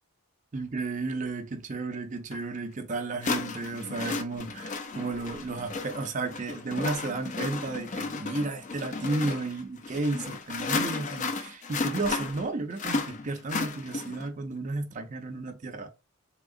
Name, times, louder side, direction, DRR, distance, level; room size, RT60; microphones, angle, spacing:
voice 1, 0.5-15.9, right 3 dB, 35° right, 0.5 m, -33 dB
sound 1, 2.3-2.4 3.2-14.3, left 4 dB, 35° left, 0.4 m, -34 dB
3.6 x 2.8 x 2.5 m
head